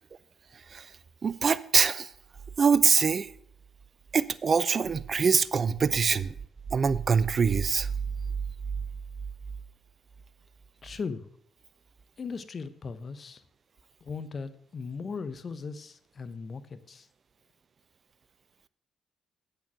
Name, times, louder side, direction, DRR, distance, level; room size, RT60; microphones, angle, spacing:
voice 1, 1.2-2.1 2.6-3.3 4.1-6.3 6.7-7.9, right 6 dB, 45° right, 0.5 m, -24 dB
voice 2, 10.8-11.3 12.2-13.4 14.0-17.1, left 5 dB, 45° left, 0.8 m, -38 dB
8.2 x 6.7 x 6.1 m
hypercardioid pair, 45°, 0 cm